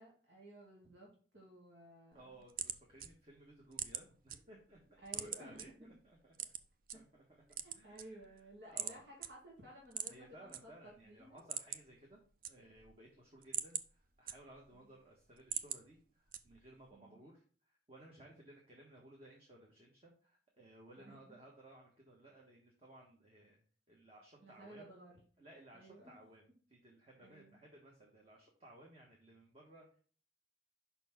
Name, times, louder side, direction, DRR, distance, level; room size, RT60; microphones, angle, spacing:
voice 1, 0.0-2.3 5.0-5.9 7.6-11.4 14.7-14.8 16.9-17.2 21.0-21.2 24.4-25.1 25.7-26.1 27.2-27.6, right 1 dB, 85° right, -3 dB, 2.4 m, -56 dB
voice 2, 2.1-6.5 6.9-7.4 7.7-8.3 8.6-9.1 10.0-12.2 12.5-23.6 23.9-24.9 25.4-30.0, right 1 dB, 30° right, -2 dB, 1.4 m, -59 dB
sound 1, 2.1-4.4 4.7-5.7 6.3-7.0 7.4-8.4 8.8-9.0 9.2-9.3 9.9-10.6 10.9-11.0 11.3-12.0 12.2-12.9 13.3-14.8 15.2-15.8 16.3-16.8, right 9 dB, 50° right, 0.5 m, -42 dB
5.7 x 4.4 x 5.7 m, 0.43 s
head